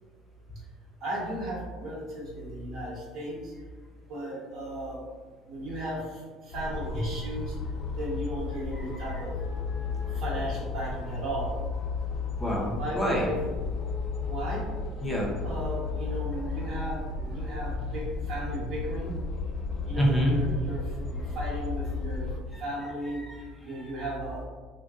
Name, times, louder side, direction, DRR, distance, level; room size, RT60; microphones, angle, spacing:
voice 1, 1.0-3.5 4.1-5.0 5.5-6.0 6.4-7.5 8.0-9.3 10.1-11.5 12.4-13.4 14.3-14.6 15.4-19.1 19.8-20.8 21.1-22.3 22.6-23.2 23.6-24.4, right 1 dB, 60° right, -6 dB, 1.1 m, -35 dB
sound 1, 6.5-22.4, left 4 dB, 50° left, 0.4 m, -33 dB
voice 2, 8.7-9.2 9.5-10.2 12.4-13.3 15.0-15.3 16.5-16.7 17.4-17.5 20.0-20.4 22.1-22.2 22.5-22.6 23.1-24.0, equal, 10° left, -4 dB, 0.7 m, -30 dB
2.5 x 2.2 x 3.5 m, 1.4 s
supercardioid pair, 105°, 0 cm